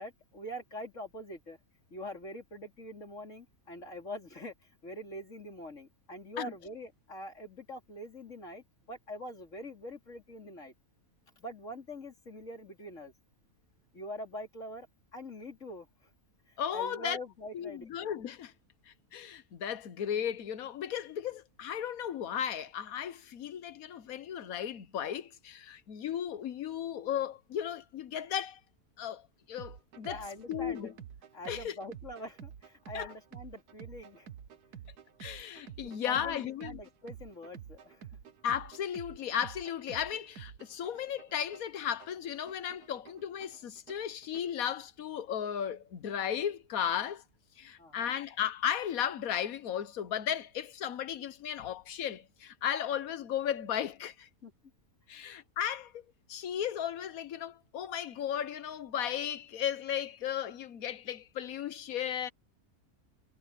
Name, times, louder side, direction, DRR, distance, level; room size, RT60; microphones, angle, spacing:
voice 1, 0.0-1.6 1.9-10.7 11.4-13.1 13.9-14.9 15.1-15.9 16.5-18.0 30.0-30.9 31.3-34.3 35.8-38.1 47.8-48.1 54.4-54.5 55.1-55.3, equal, 55° left, 3.9 m, -44 dB
voice 2, 16.6-17.2 17.5-18.5 18.9-28.6 29.0-30.9 31.5-31.7 32.9-33.1 35.2-36.8 38.4-47.2 47.6-54.3 55.1-62.3, left 9 dB, 70° left, 1.4 m, -35 dB
sound 1, 29.6-44.6, right 9 dB, 85° right, 1.6 m, -50 dB
omnidirectional pair, 1.6 m